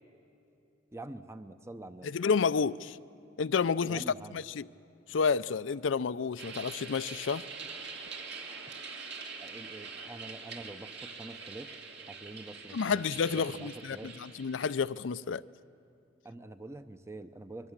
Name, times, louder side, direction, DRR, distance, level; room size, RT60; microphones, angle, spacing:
voice 1, 0.9-2.1 3.8-4.4 9.4-11.8 12.1-13.0 13.3-14.1 16.2-17.7, right 2 dB, 15° right, 0.6 m, -46 dB
voice 2, 2.0-3.0 3.4-4.0 4.3-4.7 5.1-7.4 12.7-15.4, left 5 dB, 85° left, 0.5 m, -30 dB
sound 1, 6.4-14.7, right 4 dB, 65° right, 2.6 m, -44 dB
26.0 x 22.5 x 7.3 m
head